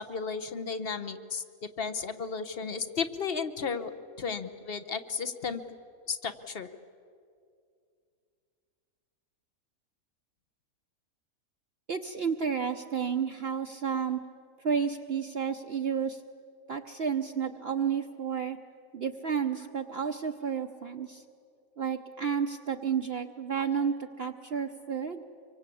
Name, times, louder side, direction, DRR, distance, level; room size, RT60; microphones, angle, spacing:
voice 1, 0.0-1.4 1.8-3.9 4.2-5.6 6.1-6.7, left 5 dB, 45° left, 10 dB, 1.2 m, -34 dB
voice 2, 11.9-14.2 14.6-16.2 16.7-18.6 18.9-21.2 21.8-25.2, right 7 dB, 50° right, 4 dB, 1.0 m, -31 dB
25.5 x 24.0 x 8.5 m, 2.3 s
omnidirectional pair, 1.5 m